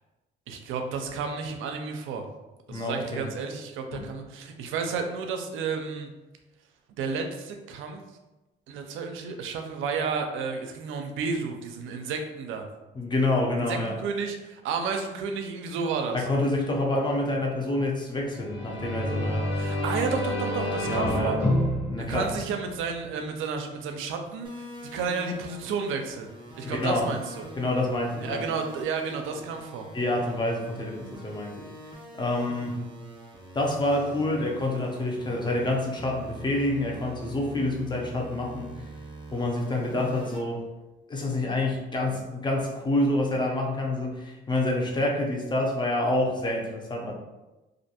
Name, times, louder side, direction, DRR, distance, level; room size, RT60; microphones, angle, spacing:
voice 1, 0.5-2.3 2.7-6.1 7.0-8.0 8.7-12.7 13.7-16.3 19.6-21.4 22.1-24.6 24.9-26.3 26.6-27.4 28.2-29.9, right 5 dB, 85° right, 5 dB, 0.4 m, -31 dB
voice 2, 2.7-3.3 3.9-4.1 12.9-14.0 16.1-19.5 20.8-21.4 21.9-22.3 26.6-27.1 27.6-28.5 29.9-31.7 32.2-32.8 33.5-38.9 39.3-40.6 41.1-47.1, left 1 dB, 25° left, -1 dB, 0.6 m, -27 dB
sound 1, 18.3-23.1, left 1 dB, 70° left, 1.4 m, -29 dB
sound 2, 24.4-40.4, right 1 dB, 25° right, 0.6 m, -44 dB
2.4 x 2.2 x 2.8 m, 1.1 s
cardioid pair, 90°, 20 cm